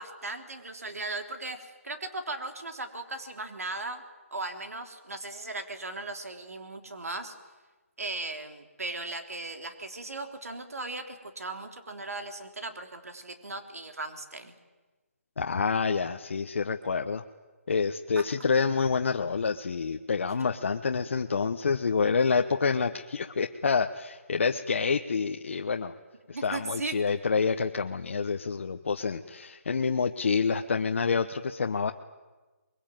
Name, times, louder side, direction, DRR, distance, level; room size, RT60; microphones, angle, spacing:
voice 1, 0.0-4.0 4.3-7.3 8.0-14.6 18.2-18.3 20.3-20.4 26.3-27.0, right 2 dB, 85° right, 6 dB, 3.5 m, -37 dB
voice 2, 15.4-17.2 17.7-25.9 26.3-31.9, left 5 dB, 55° left, 5 dB, 1.0 m, -27 dB
24.5 x 22.0 x 9.2 m, 1.2 s
hypercardioid pair, 170°, 8 cm